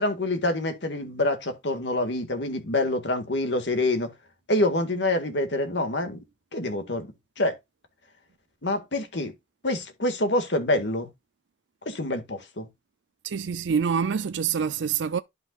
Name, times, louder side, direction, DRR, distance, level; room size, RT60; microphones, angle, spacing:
voice 1, 0.0-4.1 4.5-6.2 6.5-7.1 7.4-7.5 8.6-9.3 9.6-11.1 11.9-12.7, left 1 dB, 80° left, 1.9 m, -26 dB
voice 2, 13.2-15.2, right 6 dB, 90° right, 0.5 m, -26 dB
11.5 x 5.4 x 2.4 m
head